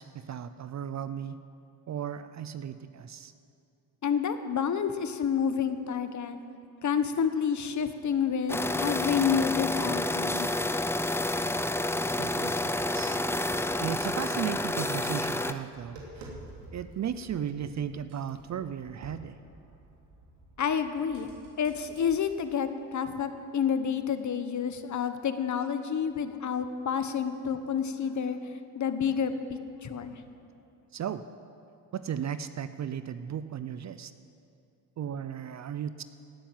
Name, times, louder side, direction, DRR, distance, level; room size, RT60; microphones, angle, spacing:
voice 1, 0.0-1.4 1.9-3.3 12.2-13.4 13.8-16.4 16.7-19.4 30.9-31.3 31.9-34.1 35.0-36.0, right 9 dB, 40° right, 12 dB, 0.6 m, -36 dB
voice 2, 4.0-6.4 6.8-11.0 20.6-21.3 21.6-28.4 28.7-30.2, left 7 dB, 45° left, 10 dB, 1.2 m, -29 dB
sound 1, 8.5-15.5, left 1 dB, 5° left, 0.5 m, -29 dB
Tap, 15.5-22.2, right 2 dB, 80° right, 3.0 m, -50 dB
16.5 x 7.0 x 9.3 m, 2.5 s
supercardioid pair, 80°, 42 cm